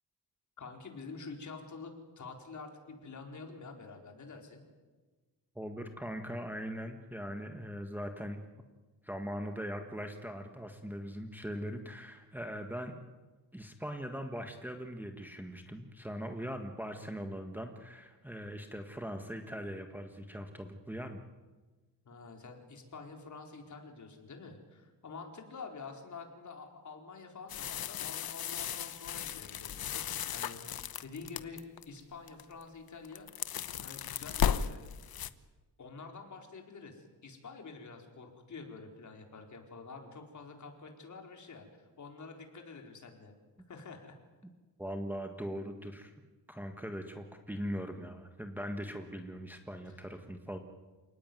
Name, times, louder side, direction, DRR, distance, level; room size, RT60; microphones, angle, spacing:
voice 1, 0.6-4.6 22.0-30.0 30.3-30.6 31.0-33.3 33.8-34.8 35.8-43.3 43.7-44.1, left 4 dB, 45° left, 3 dB, 4.5 m, -48 dB
voice 2, 5.5-8.4 9.0-12.9 13.5-21.2 44.8-46.1 46.5-50.6, equal, 5° right, 4 dB, 1.6 m, -40 dB
sound 1, 27.5-31.9 32.3-32.6 32.9-35.3, left 9 dB, 60° left, 1.1 m, -35 dB
28.5 x 18.5 x 9.4 m, 1.3 s
wide cardioid pair, 145°, 41 cm